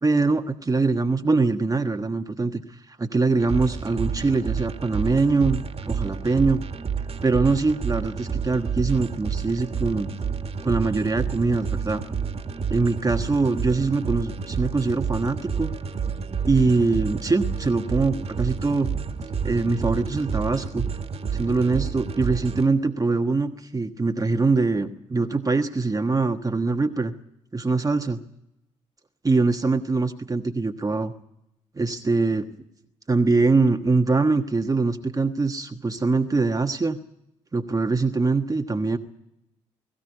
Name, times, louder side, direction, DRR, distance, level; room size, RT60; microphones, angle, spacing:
voice 1, 0.0-6.6 7.2-10.1 10.6-12.0 12.7-15.7 16.5-18.9 19.4-20.9 21.3-27.1 27.5-28.2 29.2-31.1 31.8-32.5 33.1-37.0 37.5-39.0, right 3 dB, 20° right, 6 dB, 1.3 m, -23 dB
sound 1, 3.4-22.7, right 6 dB, 40° right, 1.9 m, -30 dB
21.0 x 15.5 x 9.5 m, 0.84 s
hypercardioid pair, 50°, 16 cm